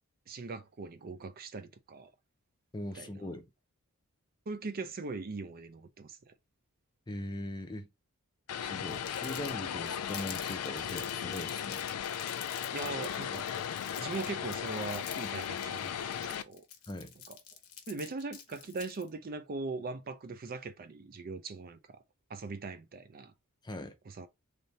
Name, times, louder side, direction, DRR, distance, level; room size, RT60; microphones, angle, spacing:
voice 1, 0.3-2.1 2.9-3.1 4.5-6.3 12.7-13.5 14.0-16.6 17.3-17.4 17.9-22.0 22.3-23.3 24.1-24.3, right 3 dB, 40° right, 0.5 m, -40 dB
voice 2, 2.7-3.4 7.1-7.9 8.6-11.8 16.9-17.1 23.6-23.9, left 1 dB, 20° left, 0.6 m, -40 dB
Vehicle, 8.5-16.4, left 9 dB, 85° left, 0.4 m, -36 dB
Crumpling crinkling, 8.9-19.1, left 9 dB, 70° left, 0.9 m, -48 dB
3.4 x 2.7 x 4.1 m
head